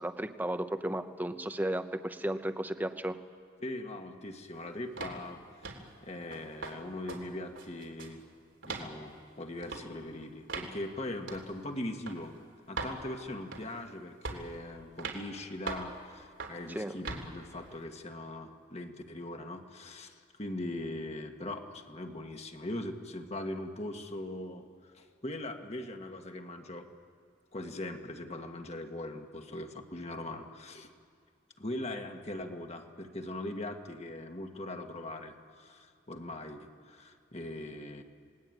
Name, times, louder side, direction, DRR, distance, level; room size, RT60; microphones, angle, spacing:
voice 1, 0.0-3.2 16.7-17.0, right 1 dB, 10° right, 9 dB, 0.9 m, -34 dB
voice 2, 3.6-5.4 6.0-8.2 8.6-12.4 12.7-26.9 27.5-30.9 31.6-38.0, left 1 dB, 35° left, 5 dB, 1.7 m, -40 dB
sound 1, 5.0-5.2 5.6-5.9 6.3-6.8 7.1-7.2 7.6-8.2 8.6-8.9 9.6-9.8 10.5-10.7 11.3-11.5 12.1-12.2 12.8-13.0 13.5-13.8 14.2-14.5 15.0-15.2 15.7-15.9 16.4-16.6 17.0-17.3, right 3 dB, 80° right, 3.4 m, -39 dB
29.0 x 19.5 x 9.2 m, 2.1 s
head